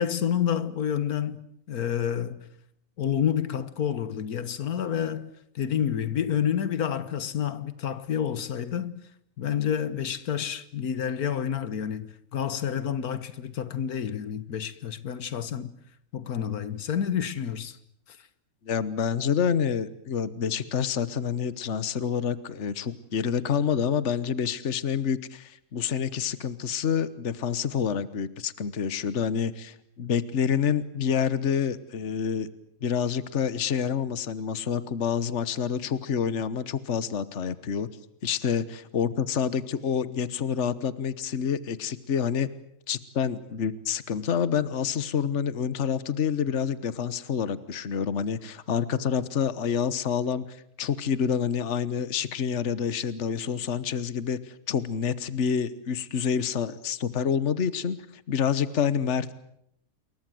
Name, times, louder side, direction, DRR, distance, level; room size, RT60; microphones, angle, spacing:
voice 1, 0.0-2.5 3.0-9.0 9.4-15.7 16.1-17.8 18.1-18.2, left 9 dB, 85° left, 1.7 m, -29 dB
voice 2, 18.6-32.5 32.8-37.9 38.2-42.5 42.9-58.0 58.3-59.3, left 7 dB, 55° left, 1.5 m, -28 dB
28.5 x 22.0 x 7.8 m
omnidirectional pair, 1.5 m